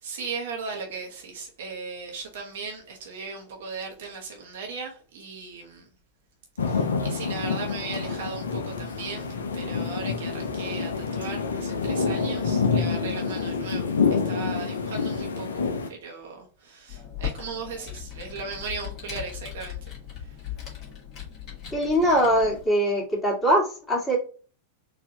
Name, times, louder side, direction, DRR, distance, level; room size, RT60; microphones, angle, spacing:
voice 1, 0.0-5.9 6.6-19.8 20.2-20.4, right 4 dB, 60° right, 1.0 m, -37 dB
sound 1, 6.6-15.9, left 5 dB, 70° left, 0.5 m, -27 dB
Computer keyboard, 16.9-22.7, left 10 dB, 35° left, 1.7 m, -38 dB
voice 2, 21.7-24.2, equal, 15° left, 2.0 m, -22 dB
4.1 x 2.7 x 2.8 m
figure-of-eight pair, 90°, 0 cm